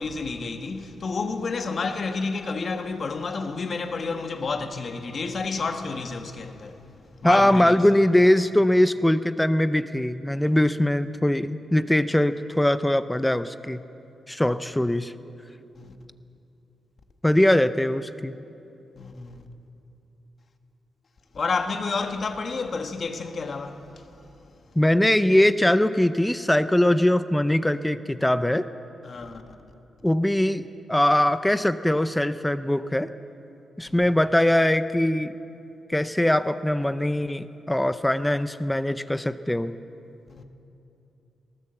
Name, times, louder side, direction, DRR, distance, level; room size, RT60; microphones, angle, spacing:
voice 1, 0.0-6.8 7.2-7.8 14.5-14.6 15.8-16.0 19.0-19.5 21.3-24.1 29.0-29.7 33.9-34.1 40.3-40.4, left 4 dB, 45° left, 1.6 m, -30 dB
voice 2, 7.2-13.8 14.3-15.1 17.2-18.3 24.8-28.7 30.0-33.1 33.8-35.3 35.9-39.7, left 1 dB, 5° left, 0.5 m, -21 dB
20.5 x 18.5 x 7.8 m
wide cardioid pair, 125°, 0 cm